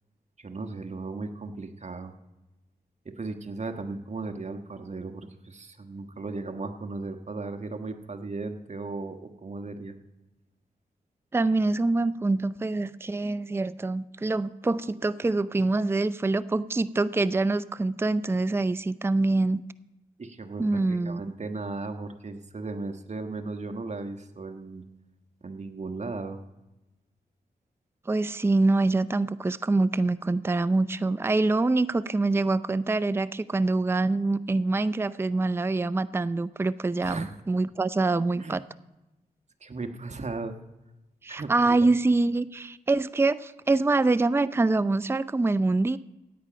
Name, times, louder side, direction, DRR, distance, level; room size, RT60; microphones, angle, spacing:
voice 1, 0.4-2.1 3.0-10.0 20.2-24.8 25.4-26.4 37.0-37.3 38.4-38.6 39.6-40.6 41.3-41.9, right 3 dB, 45° right, 6 dB, 1.3 m, -36 dB
voice 2, 11.3-19.6 20.6-21.2 28.1-38.6 41.2-46.0, right 2 dB, 15° right, 15 dB, 0.4 m, -25 dB
16.5 x 8.7 x 5.1 m, 1.0 s
cardioid pair, 55°, 17 cm